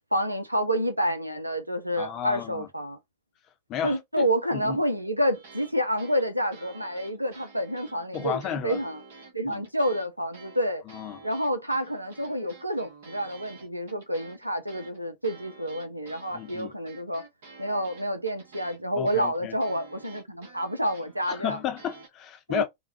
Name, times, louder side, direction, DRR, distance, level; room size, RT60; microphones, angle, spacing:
voice 1, 0.1-3.0 3.8-9.0 9.3-10.8 11.2-17.2 17.6-21.6 22.5-22.6, equal, 85° right, 0.6 m, -28 dB
voice 2, 2.0-2.7 3.7-4.3 4.5-4.8 8.1-8.8 9.4-9.6 10.9-11.2 16.3-16.7 18.9-19.6 21.3-22.6, left 9 dB, 35° left, 0.8 m, -33 dB
sound 1, 5.3-5.7 6.0-10.1 10.3-22.1, right 4 dB, 60° right, 1.2 m, -49 dB
3.4 x 2.3 x 2.8 m
figure-of-eight pair, 90°, 0 cm